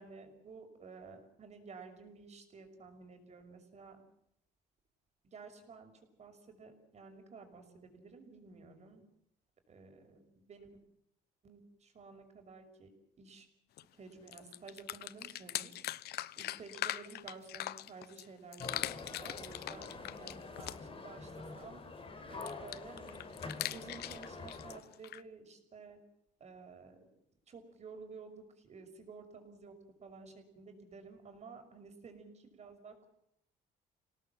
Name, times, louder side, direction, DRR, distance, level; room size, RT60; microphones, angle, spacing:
voice 1, 0.0-4.0 5.2-5.9 6.2-9.0 9.7-10.7 11.4-12.9 13.2-13.5 14.0-15.9 16.4-21.8 22.3-23.3 23.7-26.0 26.4-27.1 27.5-33.1, right 4 dB, 40° right, 5 dB, 6.1 m, -53 dB
sound 1, 13.8-13.9 14.1-18.2 18.5-21.0 22.4-25.2, left 14 dB, 70° left, 0.9 m, -41 dB
sound 2, 18.6-24.8, left 3 dB, 35° left, 4.6 m, -46 dB
28.0 x 18.5 x 7.7 m, 0.74 s
cardioid pair, 110°, 17 cm